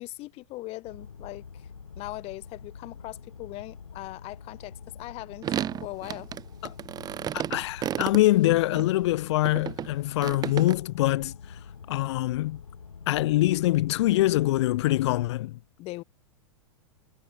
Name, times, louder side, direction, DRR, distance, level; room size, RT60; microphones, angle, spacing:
voice 1, 0.0-1.4 2.0-6.3 15.8-16.0, left 20 dB, 35° left, 1.0 m, -40 dB
sound 1, 0.8-15.3, left 6 dB, 80° left, 2.3 m, -46 dB
sound 2, 5.4-8.9 9.4-10.7, right 10 dB, 25° right, 0.8 m, -32 dB
voice 2, 7.3-11.6 11.9-12.6 13.1-15.6, left 16 dB, 55° left, 1.5 m, -24 dB
figure-of-eight pair, 100°, 17 cm